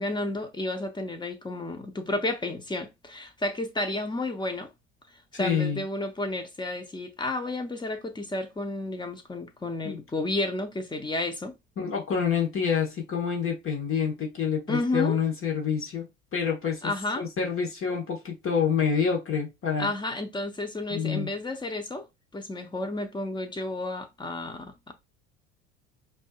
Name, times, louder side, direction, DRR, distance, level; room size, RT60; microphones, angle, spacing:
voice 1, 0.0-4.7 5.4-11.5 14.7-15.2 16.8-17.3 19.8-22.0 22.3-24.9, left 2 dB, 15° left, 0.9 m, -31 dB
voice 2, 5.3-5.8 9.8-10.0 11.8-19.9 20.9-21.3, left 6 dB, 35° left, 1.3 m, -27 dB
5.0 x 2.6 x 2.3 m
hypercardioid pair, 75°, 35 cm